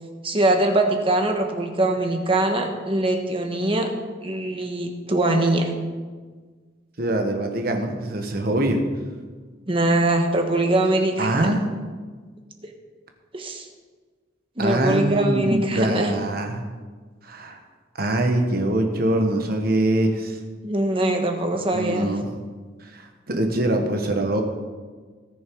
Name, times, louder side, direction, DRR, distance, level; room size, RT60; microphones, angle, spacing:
voice 1, 0.2-3.9 4.2-5.7 9.7-11.5 13.3-13.7 14.6-16.1 20.6-22.1, right 1 dB, 25° right, 3 dB, 1.3 m, -22 dB
voice 2, 7.0-8.8 11.2-11.7 14.6-16.6 17.2-17.6 18.0-20.4 21.5-22.3 22.9-24.4, right 1 dB, 50° right, 4 dB, 1.3 m, -23 dB
18.0 x 6.9 x 4.7 m, 1.5 s
head